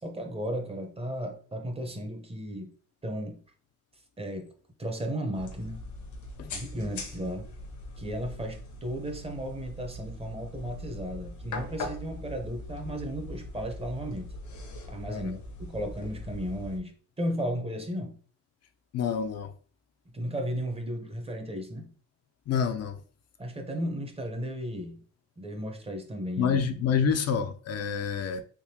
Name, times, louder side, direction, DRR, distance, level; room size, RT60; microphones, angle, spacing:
voice 1, 0.0-2.7 3.0-3.4 4.2-4.5 4.8-5.8 6.5-7.5 8.0-14.3 14.9-18.2 20.1-21.9 23.4-25.0 25.4-26.6, equal, 20° right, 0.8 m, -35 dB
sound 1, 5.3-16.8, left 2 dB, 75° left, 0.9 m, -41 dB
voice 2, 18.9-19.5 22.5-23.0 26.4-28.4, left 7 dB, 55° left, 0.5 m, -28 dB
3.6 x 2.7 x 2.8 m
cardioid pair, 90°, 30 cm